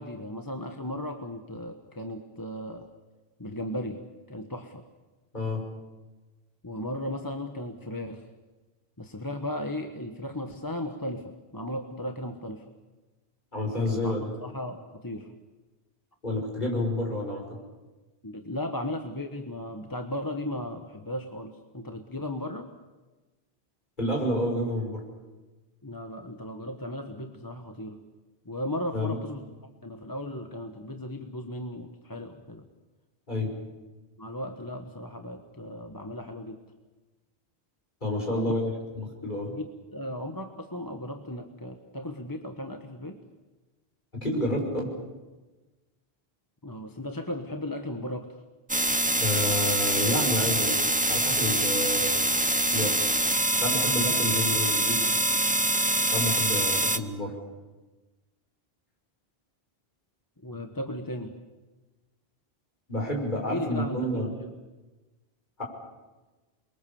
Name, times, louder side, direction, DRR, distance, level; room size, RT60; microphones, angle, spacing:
voice 1, 0.0-2.9 3.4-4.8 6.6-8.3 9.0-12.7 13.8-15.3 18.2-22.7 25.8-28.0 28.4-29.5 29.8-32.7 34.2-36.6 38.3-38.6 39.0-39.1 39.3-43.2 46.6-48.4 60.4-61.4 63.5-64.6, left 1 dB, 20° left, 5 dB, 1.3 m, -36 dB
voice 2, 13.5-14.3 16.2-17.4 24.0-25.0 28.9-29.2 33.3-33.5 38.0-39.5 44.2-45.0 49.2-50.8 51.1-52.1 52.7-53.0 53.5-55.0 56.0-57.4 62.9-64.3 65.6-65.7, left 1 dB, 50° left, 0 dB, 6.2 m, -29 dB
sound 1, 48.7-57.0, right 1 dB, 10° right, 0.8 m, -25 dB
28.5 x 22.5 x 7.2 m, 1.2 s
omnidirectional pair, 1.1 m